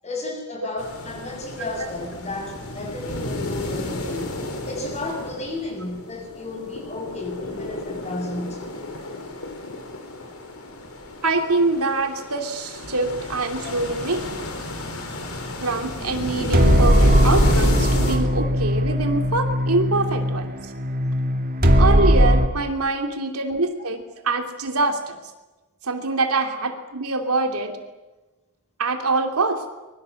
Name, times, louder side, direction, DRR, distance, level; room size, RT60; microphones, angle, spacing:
voice 1, 0.0-8.6 13.6-13.7, left 2 dB, 30° left, 1 dB, 7.6 m, -33 dB
sound 1, 0.8-18.2, left 1 dB, 65° left, 4.8 m, -31 dB
voice 2, 11.2-14.5 15.6-20.5 21.8-25.2 25.8-27.8 28.8-29.7, right 3 dB, 75° right, 5 dB, 2.9 m, -24 dB
sound 2, 16.5-22.5, equal, 40° right, 2.5 m, -18 dB
25.0 x 23.0 x 7.8 m, 1.2 s
head